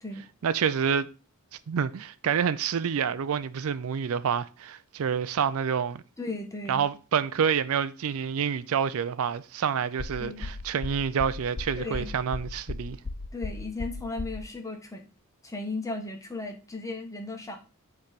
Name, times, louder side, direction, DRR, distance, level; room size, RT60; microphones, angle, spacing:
voice 1, 0.4-1.1 1.7-6.0 6.7-13.0, right 7 dB, 70° right, 0.4 m, -28 dB
voice 2, 6.2-6.8 10.2-10.5 11.8-12.1 13.3-15.0 15.4-17.6, left 3 dB, 15° left, 1.3 m, -36 dB
sound 1, 10.0-14.4, left 3 dB, 35° left, 0.5 m, -35 dB
8.1 x 3.3 x 5.0 m
head